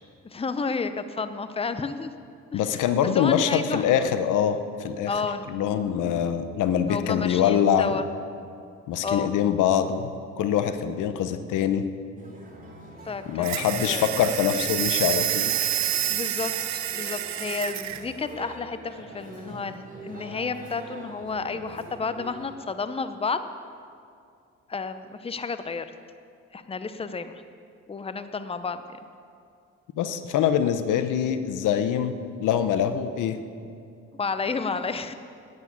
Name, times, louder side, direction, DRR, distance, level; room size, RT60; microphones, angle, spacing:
voice 1, 0.2-2.1 2.5-2.6 3.0-4.1 5.1-5.5 6.9-8.1 9.0-9.3 13.1-13.5 13.8-14.0 16.1-23.5 24.7-25.8 26.5-27.3 27.9-28.8 34.2-35.1, left 4 dB, 20° left, 11 dB, 0.7 m, -31 dB
voice 2, 2.5-5.1 5.5-8.0 8.9-10.1 10.4-11.9 13.3-15.7 30.0-32.1 32.4-33.4, left 9 dB, 85° left, 10 dB, 0.9 m, -24 dB
sound 1, 12.2-22.5, right 1 dB, 25° right, 3.0 m, -43 dB
sound 2, 13.4-18.0, right 12 dB, 65° right, 0.7 m, -28 dB
11.0 x 9.7 x 8.4 m, 2.4 s
cardioid pair, 90°, 30 cm